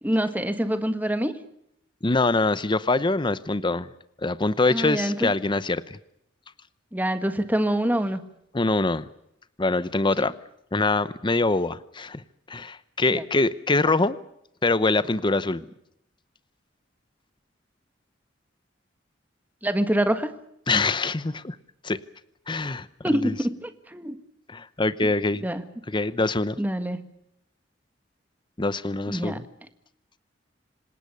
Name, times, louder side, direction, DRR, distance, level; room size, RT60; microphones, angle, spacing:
voice 1, 0.0-1.4 4.7-5.3 6.9-8.2 10.2-10.3 13.1-13.2 19.6-20.3 23.0-24.2 25.4-25.6 26.6-27.0 29.1-29.4, right 1 dB, 10° right, 9 dB, 1.6 m, -25 dB
voice 2, 2.0-3.9 4.2-6.0 8.5-9.1 9.6-10.3 10.7-12.2 12.5-14.2 14.6-15.6 20.7-21.6 21.8-22.0 22.5-22.9 23.1-23.3 24.5-25.4 25.9-26.6 28.6-29.4, left 3 dB, 25° left, 15 dB, 0.8 m, -24 dB
27.0 x 19.5 x 6.8 m, 0.76 s
head